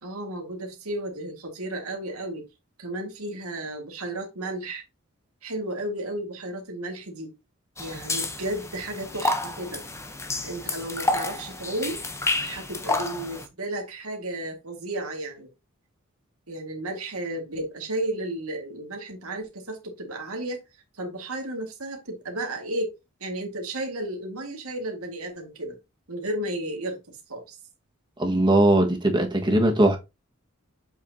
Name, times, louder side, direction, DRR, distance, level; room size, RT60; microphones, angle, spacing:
voice 1, 0.0-2.5 2.8-4.8 5.4-7.3 7.8-9.8 10.4-12.0 12.4-15.5 16.5-20.6 21.0-22.9 23.2-25.8 26.1-27.6, right 1 dB, 90° right, 2.0 m, -33 dB
sound 1, 7.8-13.5, left 2 dB, 15° left, 0.8 m, -30 dB
voice 2, 28.2-30.0, right 1 dB, 20° right, 1.5 m, -20 dB
7.8 x 4.9 x 2.8 m
head